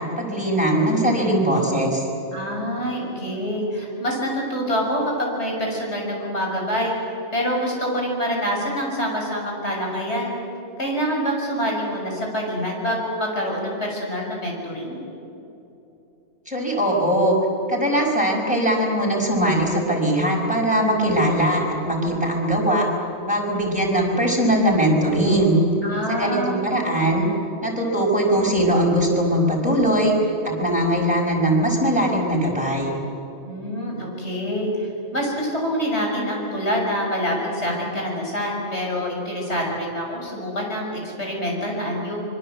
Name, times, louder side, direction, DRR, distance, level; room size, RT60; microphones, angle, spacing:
voice 1, 0.0-2.1 16.5-17.4 17.7-22.9 23.2-25.6 26.1-27.3 27.6-32.9, right 1 dB, 5° right, -1 dB, 5.8 m, -20 dB
voice 2, 2.3-7.0 7.3-10.4 10.8-15.0 25.8-26.6 33.4-34.9 35.1-42.2, equal, 70° left, -1 dB, 6.8 m, -26 dB
25.5 x 24.0 x 7.9 m, 2.8 s
omnidirectional pair, 1.2 m